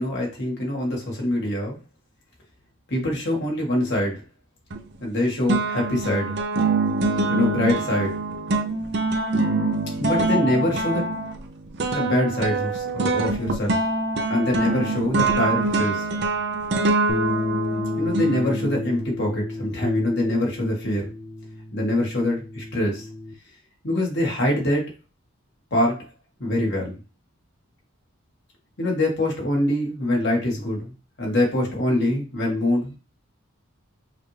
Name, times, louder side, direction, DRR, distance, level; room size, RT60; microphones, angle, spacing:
voice 1, 0.0-1.8 2.9-4.2 5.0-6.4 7.3-8.2 10.0-11.0 11.9-13.8 14.3-16.0 18.0-21.1 21.7-23.1 23.8-24.8 25.7-26.0 26.4-26.9 28.8-30.9 31.2-33.0, left 1 dB, 50° left, -1 dB, 1.6 m, -24 dB
sound 1, 4.7-5.2 5.5-18.9, right 3 dB, 50° right, 0.5 m, -24 dB
sound 2, 17.1-23.3, left 2 dB, 5° left, 0.5 m, -31 dB
5.7 x 2.6 x 3.2 m, 0.33 s
head